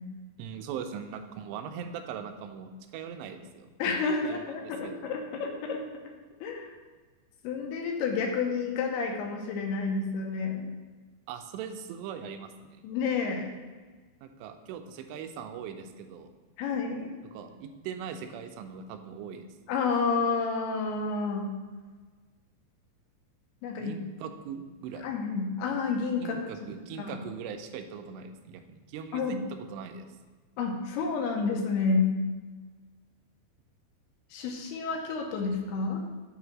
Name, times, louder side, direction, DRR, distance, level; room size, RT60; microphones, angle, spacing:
voice 1, 0.4-3.7 4.3-5.1 11.3-12.8 14.2-16.3 17.2-19.5 23.8-25.1 26.2-30.1, right 7 dB, 90° right, 7 dB, 2.8 m, -40 dB
voice 2, 3.8-5.8 6.4-6.7 7.4-10.7 12.8-13.5 16.6-17.1 19.7-21.5 23.6-23.9 25.0-26.4 27.0-27.2 29.1-29.4 30.6-32.1 34.3-36.0, left 4 dB, 80° left, 2 dB, 2.7 m, -30 dB
7.6 x 3.1 x 6.0 m, 1.4 s
omnidirectional pair, 4.8 m